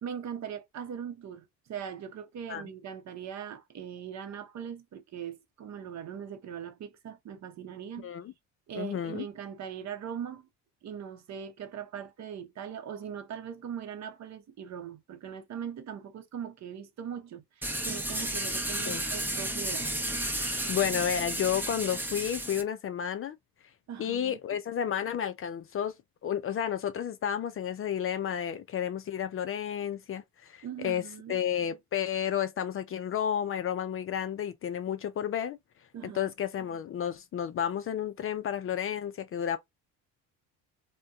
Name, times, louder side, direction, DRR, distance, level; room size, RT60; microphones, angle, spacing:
voice 1, 0.0-8.1 8.7-10.5 10.8-19.9 23.9-24.4 30.6-31.4 35.9-36.3, right 8 dB, 45° right, 0.8 m, -40 dB
voice 2, 8.7-9.3 18.9-19.0 20.7-23.4 24.0-25.9 26.2-31.0 31.3-35.6 36.0-39.6, left 9 dB, 35° left, 0.4 m, -31 dB
sound 1, 17.6-22.6, right 1 dB, 5° right, 0.8 m, -32 dB
2.6 x 2.2 x 3.4 m
supercardioid pair, 85°, 37 cm